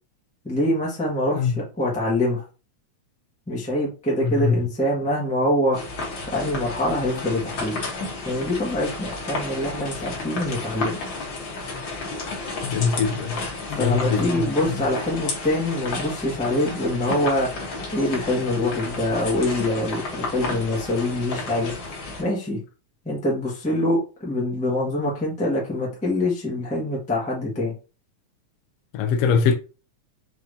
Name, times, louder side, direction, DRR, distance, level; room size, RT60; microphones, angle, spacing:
voice 1, 0.4-2.4 3.5-5.8 6.3-7.8 8.2-11.0 13.7-17.5 17.9-21.7 22.2-22.6 23.0-27.7, left 1 dB, 10° left, 0.3 m, -24 dB
voice 2, 4.2-4.6 12.6-13.4 13.7-14.3 14.6-14.7 28.9-29.6, left 6 dB, 80° left, 1.4 m, -22 dB
sound 1, 5.7-22.2, left 3 dB, 50° left, 1.5 m, -32 dB
5.6 x 3.4 x 2.7 m
omnidirectional pair, 3.4 m